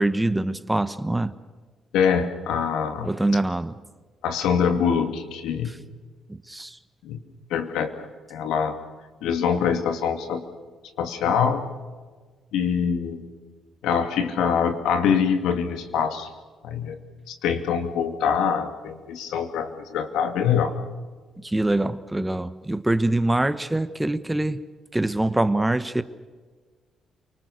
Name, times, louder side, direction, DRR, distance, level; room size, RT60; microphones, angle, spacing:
voice 1, 0.0-1.3 3.0-3.7 6.3-6.8 21.4-24.6 24.9-26.0, right 2 dB, 10° right, 13 dB, 1.1 m, -24 dB
voice 2, 1.9-3.1 4.2-5.7 7.0-7.2 7.5-7.9 8.3-8.7 9.2-10.4 11.0-11.6 12.5-13.2 13.8-16.3 16.6-17.0 17.3-20.7, left 7 dB, 90° left, 7 dB, 2.5 m, -24 dB
29.0 x 20.0 x 6.6 m, 1.4 s
cardioid pair, 90°, 0 cm